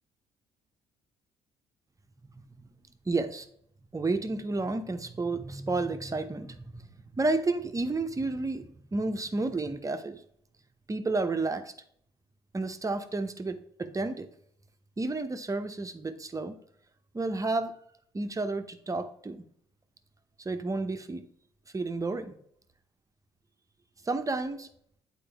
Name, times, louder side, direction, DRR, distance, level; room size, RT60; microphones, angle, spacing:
voice 1, 3.1-3.5 3.9-6.9 7.1-10.2 10.9-11.7 12.5-14.3 15.0-16.6 17.1-17.7 18.1-19.4 20.4-21.2 21.7-22.3 24.0-24.7, right 3 dB, 25° right, 8 dB, 0.8 m, -31 dB
8.6 x 4.5 x 3.5 m, 0.67 s
hypercardioid pair, 55°, 14 cm